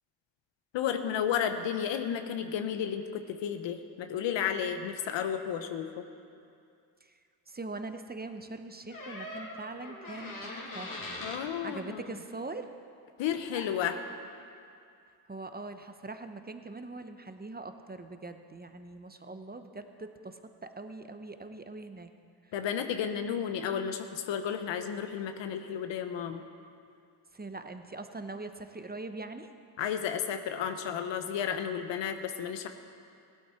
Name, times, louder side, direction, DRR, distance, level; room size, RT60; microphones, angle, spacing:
voice 1, 0.7-6.0 11.2-12.0 13.2-14.0 22.5-26.4 29.8-32.7, left 8 dB, 85° left, 8 dB, 0.9 m, -32 dB
voice 2, 7.5-10.9 11.6-12.7 15.3-22.1 22.4-22.5 27.3-29.5, right 3 dB, 20° right, 8 dB, 1.0 m, -42 dB
sound 1, 8.9-11.4 13.5-13.7, left 2 dB, 45° left, 2.6 m, -41 dB
16.5 x 12.0 x 4.5 m, 2.4 s
supercardioid pair, 50°, 43 cm